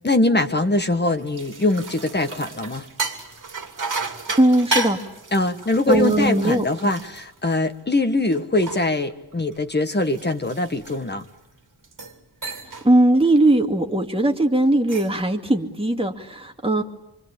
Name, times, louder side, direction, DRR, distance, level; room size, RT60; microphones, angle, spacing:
voice 1, 0.0-2.9 5.3-11.3, left 2 dB, 25° left, 8 dB, 1.6 m, -22 dB
sound 1, 1.1-7.9 8.3-11.3 11.8-12.2 12.4-12.9 13.2-13.5 14.6-15.2, right 3 dB, 50° right, 3.0 m, -33 dB
voice 2, 4.4-5.0 5.9-6.9 12.8-16.8, right 1 dB, 15° right, 3 dB, 2.4 m, -19 dB
27.0 x 24.5 x 8.6 m, 0.90 s
wide cardioid pair, 150°, 40 cm